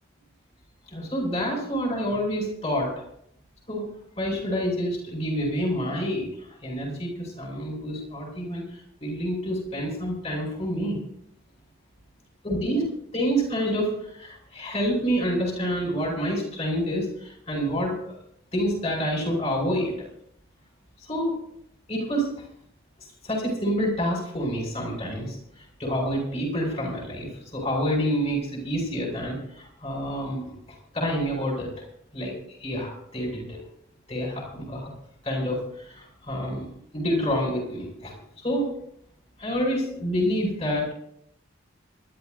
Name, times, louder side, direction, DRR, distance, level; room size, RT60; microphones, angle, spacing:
voice 1, 0.9-2.9 3.7-3.8 4.2-11.0 12.4-12.8 13.1-17.9 18.5-19.9 21.1-21.3 21.9-22.3 23.2-25.4 25.8-31.7 32.1-32.3 32.6-33.6 34.1-34.9 35.2-36.7 36.9-38.7 39.4-40.9, equal, 30° left, -1 dB, 6.4 m, -28 dB
27.5 x 12.5 x 2.7 m, 0.71 s
head